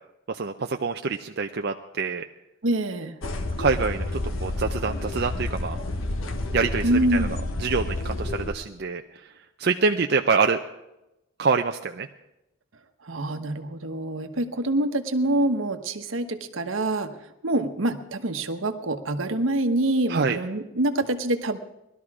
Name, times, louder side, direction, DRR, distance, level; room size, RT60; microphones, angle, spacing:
voice 1, 0.3-2.3 3.6-4.0 4.4-5.8 6.5-7.3 7.6-9.3 9.6-10.6 11.4-12.1 20.1-20.4, right 4 dB, 50° right, 4 dB, 0.5 m, -25 dB
voice 2, 2.6-3.2 6.8-7.3 13.0-17.1 17.4-21.6, right 1 dB, 75° right, 8 dB, 1.1 m, -25 dB
sound 1, 3.2-8.5, left 2 dB, 80° left, 1.2 m, -30 dB
19.5 x 12.5 x 4.8 m, 0.93 s
head